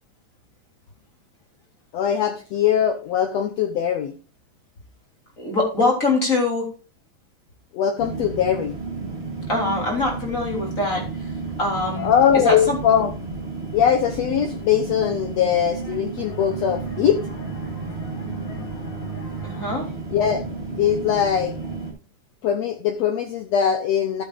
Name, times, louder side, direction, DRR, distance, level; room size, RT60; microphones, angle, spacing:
voice 1, 1.9-4.1 7.7-8.7 12.0-13.1 13.7-17.2 20.1-20.4 20.8-21.5 22.4-24.2, left 9 dB, 70° left, 6 dB, 1.7 m, -21 dB
voice 2, 5.4-6.7 9.5-11.3 11.6-12.1 12.4-12.8 18.2-18.7 19.4-19.9, left 2 dB, 25° left, -1 dB, 3.4 m, -23 dB
sound 1, 8.0-21.9, right 3 dB, 20° right, 4.0 m, -32 dB
sound 2, 16.2-21.6, right 4 dB, 85° left, 4.1 m, -40 dB
13.0 x 8.4 x 2.5 m, 0.35 s
omnidirectional pair, 3.7 m